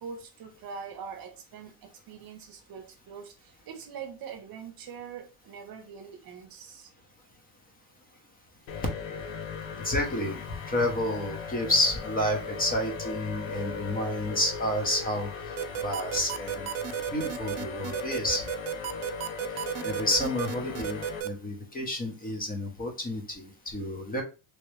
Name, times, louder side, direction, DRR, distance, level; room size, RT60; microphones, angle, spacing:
voice 1, 0.0-6.9, right 6 dB, 50° right, 0.8 m, -43 dB
sound 1, 8.7-21.2, left 6 dB, 70° left, 0.8 m, -38 dB
voice 2, 9.8-15.3 15.8-16.7 17.1-18.4 19.8-24.2, left 1 dB, 20° left, 0.8 m, -30 dB
sound 2, 15.6-21.3, right 13 dB, 80° right, 0.6 m, -33 dB
3.1 x 2.9 x 3.2 m
cardioid pair, 135°, 46 cm